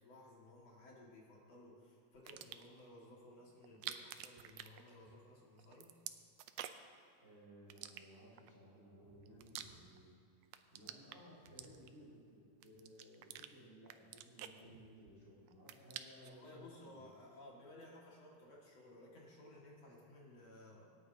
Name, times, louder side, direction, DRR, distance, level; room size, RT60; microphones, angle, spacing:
voice 1, 0.0-5.9 16.2-20.9, left 1 dB, 60° left, -4 dB, 2.9 m, -58 dB
sound 1, 2.1-2.8 3.6-5.3 5.6-7.0 7.7-8.5 9.0-10.1 10.4-12.1 12.6-13.5 13.9-15.2 15.5-16.4, right 12 dB, 90° right, 1.4 m, -49 dB
voice 2, 7.2-10.2 10.7-17.1, equal, 25° right, -6 dB, 2.6 m, -59 dB
26.0 x 9.2 x 2.7 m, 2.4 s
omnidirectional pair, 3.5 m